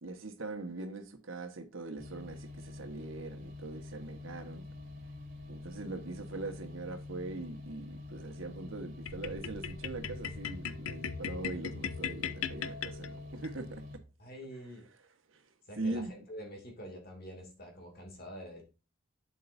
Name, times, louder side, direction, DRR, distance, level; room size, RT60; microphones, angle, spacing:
voice 1, 0.0-4.7 5.5-13.8 15.3-15.4 15.8-16.1, right 2 dB, 75° right, 1.4 m, -41 dB
sound 1, 2.0-14.0, left 2 dB, 45° right, 3.0 m, -46 dB
sound 2, 9.1-13.5, left 7 dB, 85° left, 0.7 m, -39 dB
voice 2, 14.2-14.9 15.6-18.6, equal, 50° left, 2.4 m, -46 dB
8.5 x 7.8 x 2.7 m
head